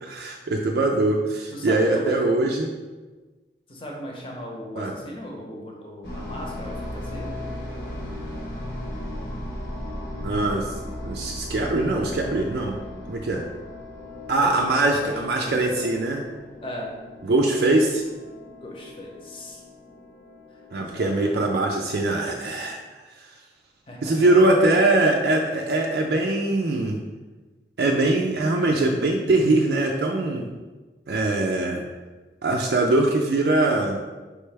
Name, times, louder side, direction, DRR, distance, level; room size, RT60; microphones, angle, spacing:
voice 1, 0.0-2.7 4.8-4.9 10.2-10.7 11.0-12.8 13.1-13.4 14.3-16.2 17.2-18.0 20.7-22.8 24.0-27.0 27.8-30.5 31.1-31.8 32.4-34.0, right 2 dB, 65° right, 0 dB, 0.4 m, -22 dB
voice 2, 1.5-2.2 3.7-7.3 14.4-14.6 15.0-15.9 16.6-16.9 17.6-17.7 18.5-19.6 20.5-21.5 23.9-24.5, equal, 30° left, -1 dB, 0.8 m, -37 dB
sound 1, 6.0-22.7, left 1 dB, 65° left, 1.0 m, -37 dB
4.8 x 3.2 x 3.3 m, 1.2 s
head